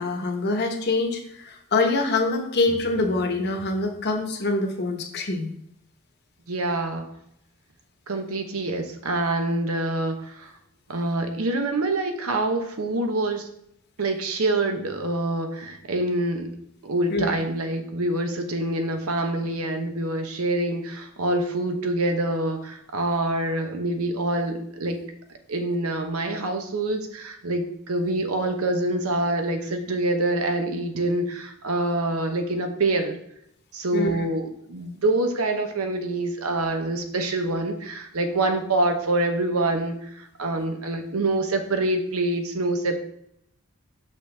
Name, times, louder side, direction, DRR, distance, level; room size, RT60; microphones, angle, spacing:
voice 1, 0.0-5.5 17.1-17.4 33.9-34.2, left 2 dB, 50° left, 4 dB, 1.1 m, -25 dB
voice 2, 6.5-7.1 8.1-10.5 10.9-13.5 14.0-16.5 16.8-25.0 25.5-33.1 33.7-43.0, right 2 dB, 80° right, 6 dB, 0.9 m, -26 dB
6.3 x 6.0 x 3.4 m, 0.75 s
head